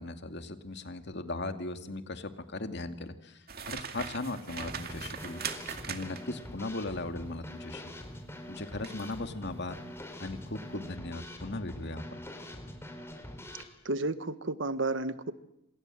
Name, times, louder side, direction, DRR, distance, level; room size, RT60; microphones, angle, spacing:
voice 1, 0.0-5.4 5.9-7.9 8.5-9.7 10.2-12.2, left 2 dB, 60° left, 7 dB, 2.4 m, -38 dB
sound 1, 3.5-6.4 8.8-9.1 9.6-9.8, right 7 dB, 50° right, 2.3 m, -40 dB
Drum kit / Snare drum, 4.6-13.6, left 1 dB, 15° left, 4.4 m, -44 dB
voice 2, 13.8-15.3, right 2 dB, 70° right, 12 dB, 1.4 m, -32 dB
28.0 x 27.5 x 7.7 m, 0.80 s
head